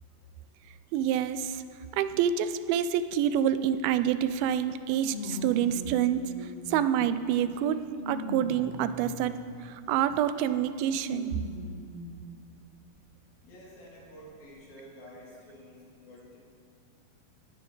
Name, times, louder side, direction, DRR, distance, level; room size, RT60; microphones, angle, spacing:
voice 1, 0.9-1.6 1.9-7.8 8.1-9.3 9.6-11.4, right 9 dB, 85° right, 13 dB, 2.4 m, -27 dB
sound 1, 3.8-3.9 5.0-7.0 7.6-9.6 10.8-12.2 13.0-13.1 14.2-14.3, equal, 20° left, 1.4 m, -40 dB
voice 2, 13.4-16.4, equal, 75° left, -5 dB, 4.6 m, -50 dB
18.5 x 10.0 x 3.9 m, 2.3 s
omnidirectional pair, 4.2 m